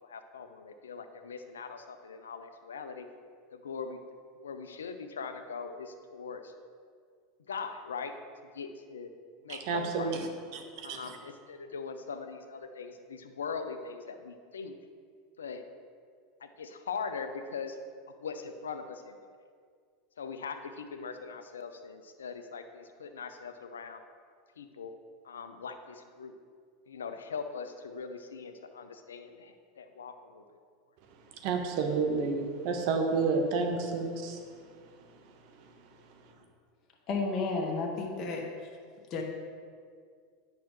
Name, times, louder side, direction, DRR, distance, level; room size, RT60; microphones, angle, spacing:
voice 1, 0.0-3.1 3.5-4.0 4.4-6.5 7.5-8.1 8.5-9.1 9.4-10.1 10.8-14.7 15.4-15.6 16.4-17.8 18.2-19.2 20.2-24.0 24.6-24.9 25.2-26.3 26.9-30.6, left 5 dB, 85° left, 8 dB, 0.5 m, -41 dB
voice 2, 9.5-11.2 31.3-34.4 35.4-35.7, right 4 dB, 60° right, 4 dB, 1.0 m, -31 dB
voice 3, 37.1-38.4 39.1-39.2, left 3 dB, 45° left, 0 dB, 1.2 m, -31 dB
9.1 x 5.6 x 3.0 m, 2.1 s
hypercardioid pair, 90°, 0 cm